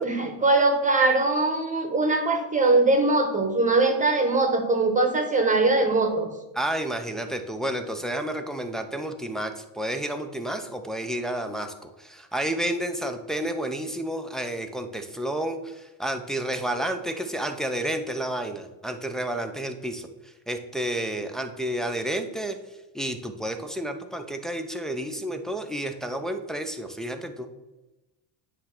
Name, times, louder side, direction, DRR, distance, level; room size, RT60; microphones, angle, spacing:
voice 1, 0.0-6.3, right 2 dB, 15° right, 5 dB, 1.0 m, -21 dB
voice 2, 6.5-22.6 22.9-27.5, right 1 dB, ahead, 5 dB, 0.4 m, -31 dB
9.7 x 3.3 x 5.8 m, 1.0 s
cardioid pair, 135°, 47 cm